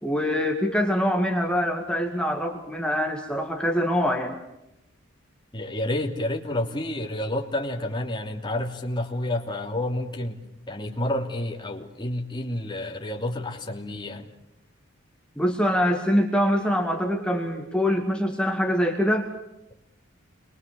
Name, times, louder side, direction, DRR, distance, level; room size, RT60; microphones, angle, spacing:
voice 1, 0.0-4.4 15.4-19.3, equal, 5° left, 2 dB, 2.1 m, -24 dB
voice 2, 5.5-10.4 10.7-14.3, left 1 dB, 20° left, 1 dB, 3.0 m, -29 dB
29.5 x 23.0 x 7.0 m, 0.87 s
head